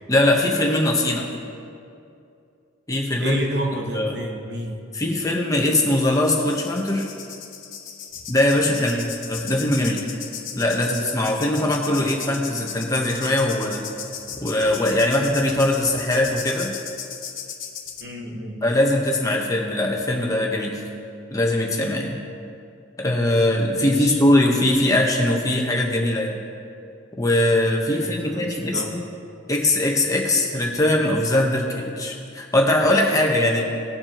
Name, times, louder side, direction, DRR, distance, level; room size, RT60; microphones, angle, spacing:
voice 1, 0.1-1.3 2.9-3.4 3.9-4.2 4.9-7.1 8.3-9.0 9.3-10.0 10.5-13.9 14.4-16.7 18.6-20.8 21.3-22.2 23.0-26.4 27.2-29.0 29.5-33.7, left 1 dB, 15° left, 0 dB, 1.1 m, -21 dB
voice 2, 3.2-4.8 8.8-9.1 18.0-18.7 23.8-24.2 27.9-28.9, right 1 dB, 55° right, 1 dB, 1.3 m, -31 dB
sound 1, 5.6-18.0, left 7 dB, 85° left, 1.1 m, -37 dB
19.0 x 7.5 x 3.0 m, 2.6 s
head